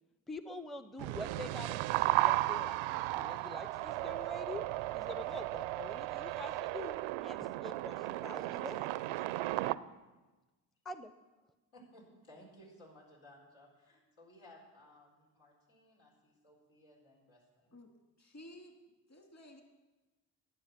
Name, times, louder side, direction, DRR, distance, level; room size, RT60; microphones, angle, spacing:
voice 1, 0.3-4.7 4.9-8.9 10.8-11.1, left 1 dB, ahead, 11 dB, 0.6 m, -46 dB
sound 1, 1.0-9.8, right 17 dB, 75° right, 0.5 m, -35 dB
voice 2, 11.7-17.7, left 1 dB, 80° left, -3 dB, 4.2 m, -59 dB
voice 3, 18.2-18.8 19.1-19.6, left 1 dB, 35° left, 2 dB, 2.7 m, -53 dB
11.0 x 9.4 x 5.9 m, 1.2 s
hypercardioid pair, 40°, 47 cm